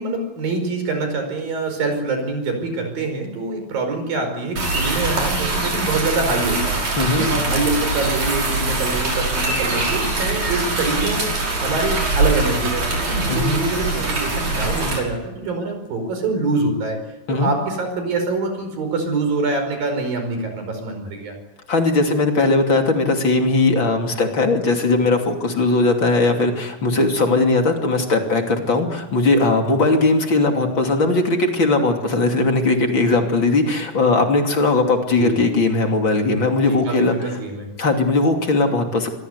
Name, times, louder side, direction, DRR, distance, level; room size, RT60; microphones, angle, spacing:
voice 1, 0.0-11.3 11.6-17.0 17.3-21.3 35.2-35.4 36.7-37.7, right 3 dB, 70° right, 5 dB, 6.9 m, -25 dB
sound 1, 4.6-15.0, right 2 dB, 55° right, 7.3 m, -23 dB
voice 2, 21.7-37.1 37.8-39.1, left 3 dB, 35° left, 3 dB, 3.1 m, -19 dB
26.0 x 23.0 x 8.2 m, 1.1 s
omnidirectional pair, 4.2 m